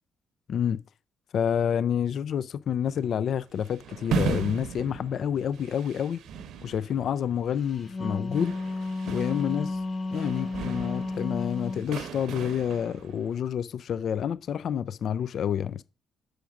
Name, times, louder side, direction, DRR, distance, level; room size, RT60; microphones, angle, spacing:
voice 1, 0.5-0.8 1.3-6.2 6.6-8.5 9.1-9.8 10.1-15.8, left 8 dB, 65° left, 0.3 m, -28 dB
sound 1, 2.9-13.4, right 6 dB, 80° right, 0.8 m, -37 dB
Wind instrument woodwind instrument, 7.7-11.9, left 2 dB, 40° left, 0.7 m, -32 dB
6.3 x 5.0 x 5.8 m
cardioid pair, 90°, 0 cm